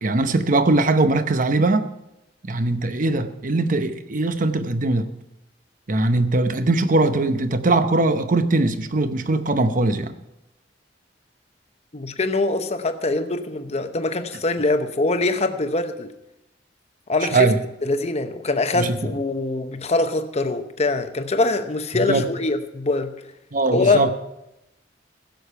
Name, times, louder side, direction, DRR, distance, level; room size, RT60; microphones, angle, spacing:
voice 1, 0.0-1.9 2.4-5.1 5.9-10.1 17.3-17.5 18.7-19.1 21.9-22.3 23.5-24.1, right 2 dB, 45° right, 10 dB, 0.8 m, -21 dB
voice 2, 11.9-16.1 17.1-17.5 17.8-23.1 23.7-24.1, left 2 dB, 35° left, 8 dB, 0.8 m, -23 dB
15.5 x 6.9 x 5.6 m, 0.90 s
head